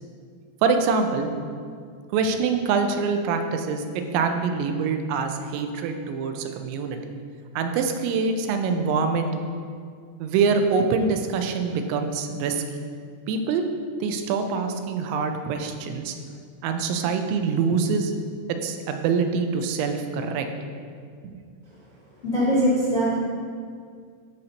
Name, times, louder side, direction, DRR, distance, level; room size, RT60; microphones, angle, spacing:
voice 1, 0.6-1.3 2.1-7.1 7.6-9.3 10.2-12.6 13.3-13.6 14.0-16.2 16.6-18.1 18.5-20.5 21.2-21.4, right 5 dB, 90° right, 6 dB, 3.0 m, -25 dB
voice 2, 22.2-23.2, equal, 50° left, -10 dB, 0.7 m, -21 dB
12.5 x 6.5 x 2.9 m, 2.1 s
omnidirectional pair, 5.1 m